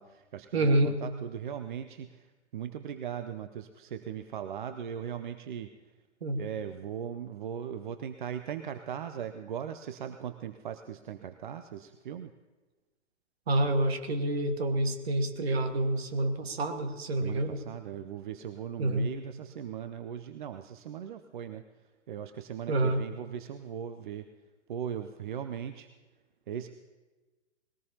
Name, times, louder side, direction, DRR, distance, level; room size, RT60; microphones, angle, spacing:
voice 1, 0.0-2.3 2.5-5.7 6.4-12.3 17.2-21.6 22.1-24.3 24.7-25.9 26.5-26.7, right 9 dB, 45° right, 9 dB, 0.6 m, -39 dB
voice 2, 0.5-1.0 6.2-6.5 13.5-17.6 18.8-19.1 22.7-23.0, right 1 dB, 60° right, 6 dB, 1.6 m, -28 dB
20.5 x 18.0 x 2.8 m, 1.2 s
figure-of-eight pair, 120°, 35 cm